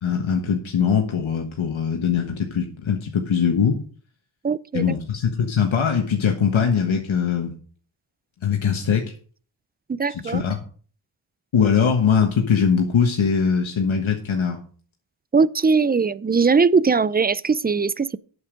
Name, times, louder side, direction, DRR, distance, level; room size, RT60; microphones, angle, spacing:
voice 1, 0.0-3.8 4.7-7.5 8.4-9.1 10.1-10.6 11.5-14.6, left 7 dB, 75° left, 1.4 m, -21 dB
voice 2, 4.4-5.0 9.9-10.4 15.3-18.2, right 5 dB, 20° right, 0.4 m, -20 dB
8.3 x 8.1 x 5.1 m
cardioid pair, 75°, 48 cm